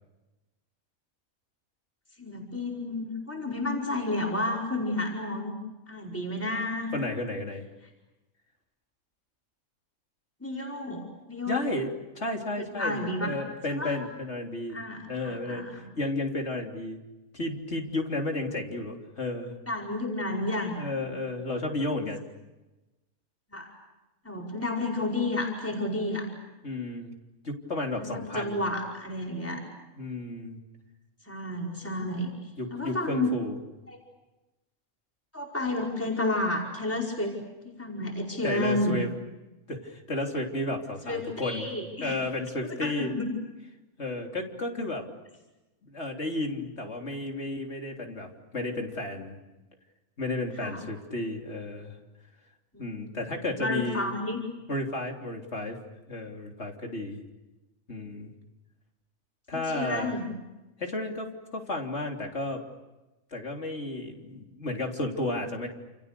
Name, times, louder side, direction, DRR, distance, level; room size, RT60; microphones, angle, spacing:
voice 1, 2.2-5.5 5.9-6.9 10.4-11.6 12.6-13.4 13.7-13.9 14.7-15.9 19.7-20.7 21.0-21.1 23.5-23.7 24.2-26.3 27.9-29.6 31.2-32.3 32.7-33.3 33.9-34.0 35.3-37.3 37.6-39.0 41.0-42.2 42.6-43.4 50.6-50.8 52.7-54.4 59.5-60.3, left 2 dB, 10° left, -1 dB, 5.1 m, -31 dB
voice 2, 6.9-7.6 11.5-15.7 16.0-17.0 17.3-19.6 20.8-22.2 26.6-27.1 27.4-28.7 30.0-30.6 32.6-33.6 38.4-39.1 39.7-41.7 42.0-43.1 44.0-45.1 45.8-49.4 50.2-52.0 52.8-54.1 54.7-55.8 56.1-57.2 57.9-58.3 59.5-60.2 60.8-62.6 63.3-65.7, left 2 dB, 50° left, 2 dB, 3.7 m, -33 dB
29.0 x 29.0 x 6.8 m, 1.1 s
omnidirectional pair, 1.5 m